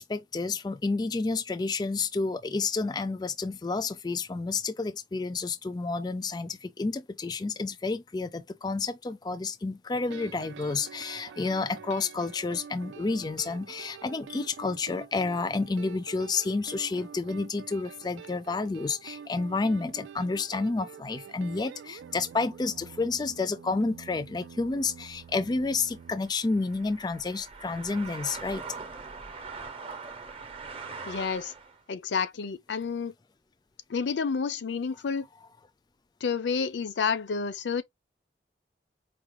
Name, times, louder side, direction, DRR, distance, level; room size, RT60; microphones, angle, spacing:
voice 1, 0.0-28.6, left 3 dB, 25° left, 0.3 m, -30 dB
sound 1, 9.9-26.2, right 7 dB, 85° right, 0.3 m, -47 dB
sound 2, 24.6-31.8, right 4 dB, 30° right, 0.7 m, -43 dB
voice 2, 31.1-31.5 31.9-33.1 33.9-35.3 36.2-37.8, left 5 dB, 80° left, 0.5 m, -29 dB
4.7 x 2.2 x 3.0 m
head